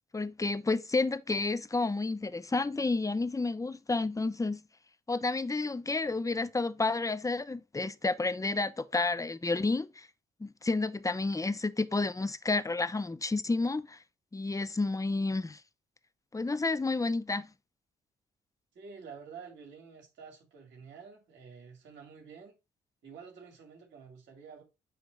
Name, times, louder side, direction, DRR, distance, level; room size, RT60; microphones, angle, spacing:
voice 1, 0.1-4.6 5.1-10.1 10.4-14.0 14.3-15.6 16.3-17.5, left 3 dB, 15° left, 0.8 m, -30 dB
voice 2, 18.7-22.6 23.0-24.6, right 6 dB, 75° right, 2.6 m, -49 dB
9.2 x 3.3 x 4.1 m
supercardioid pair, 50°, 19 cm